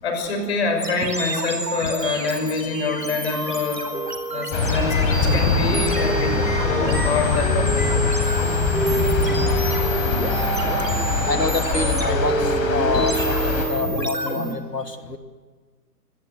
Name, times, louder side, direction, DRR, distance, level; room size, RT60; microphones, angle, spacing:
voice 1, 0.0-3.9 4.3-7.8, left 4 dB, 40° left, 4 dB, 6.0 m, -25 dB
sound 1, 0.8-14.6, right 2 dB, 85° right, 5.0 m, -27 dB
sound 2, 4.5-13.7, left 4 dB, 20° left, 4.3 m, -23 dB
voice 2, 9.2-9.6 11.3-15.2, left 3 dB, 85° left, 7 dB, 2.7 m, -27 dB
24.5 x 18.5 x 7.9 m, 1.4 s
figure-of-eight pair, 135°, 48 cm